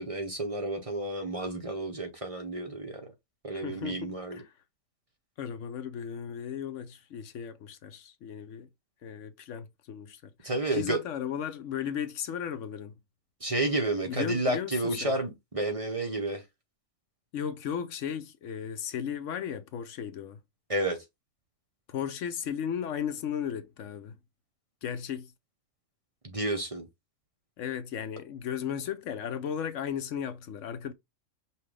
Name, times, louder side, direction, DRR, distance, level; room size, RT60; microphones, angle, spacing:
voice 1, 0.0-3.1 3.4-4.4 10.4-11.0 13.4-16.4 20.7-21.0 26.2-26.9, right 2 dB, 30° right, 0.9 m, -31 dB
voice 2, 3.6-4.5 5.4-8.7 9.0-12.9 14.0-15.1 17.3-20.4 21.9-24.2 24.8-25.3 27.6-30.9, left 8 dB, 70° left, 0.9 m, -35 dB
5.6 x 2.5 x 3.3 m
omnidirectional pair, 1.4 m